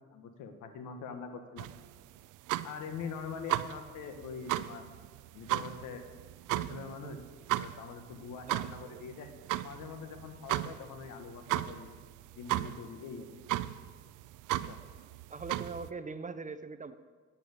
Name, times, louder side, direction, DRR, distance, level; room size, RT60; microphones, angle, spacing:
voice 1, 0.1-1.7 2.6-4.8 5.3-6.0 6.5-7.2 7.6-11.9 12.3-13.3 14.7-14.8, left 5 dB, 90° left, 7 dB, 1.5 m, -43 dB
sound 1, 1.6-15.9, right 15 dB, 85° right, 0.5 m, -36 dB
voice 2, 15.3-16.9, right 4 dB, 25° right, 10 dB, 0.8 m, -41 dB
10.0 x 9.2 x 8.2 m, 1.5 s
cardioid pair, 90°, 30 cm